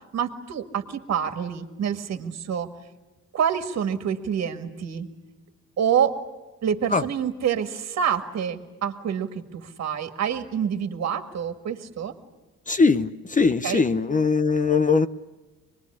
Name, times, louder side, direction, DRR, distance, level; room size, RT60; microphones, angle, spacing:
voice 1, 0.1-2.7 3.3-5.1 5.8-6.2 6.6-12.1 13.6-13.8, right 8 dB, 60° right, 8 dB, 1.9 m, -27 dB
voice 2, 12.7-15.1, left 4 dB, 25° left, 12 dB, 0.8 m, -21 dB
24.5 x 21.0 x 9.8 m, 1.1 s
cardioid pair, 90°, 30 cm